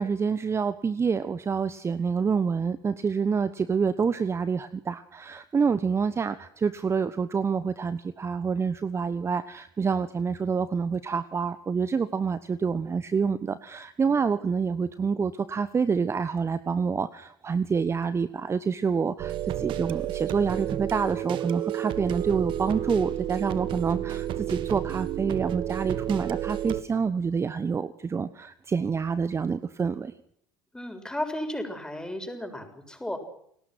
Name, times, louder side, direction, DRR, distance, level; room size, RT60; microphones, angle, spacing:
voice 1, 0.0-30.1, right 5 dB, 25° right, 14 dB, 1.2 m, -27 dB
sound 1, 19.2-26.8, right 11 dB, 45° right, 1.6 m, -31 dB
voice 2, 30.7-33.2, left 1 dB, 5° left, 6 dB, 7.1 m, -34 dB
30.0 x 19.5 x 6.3 m, 0.69 s
hypercardioid pair, 70°, 11 cm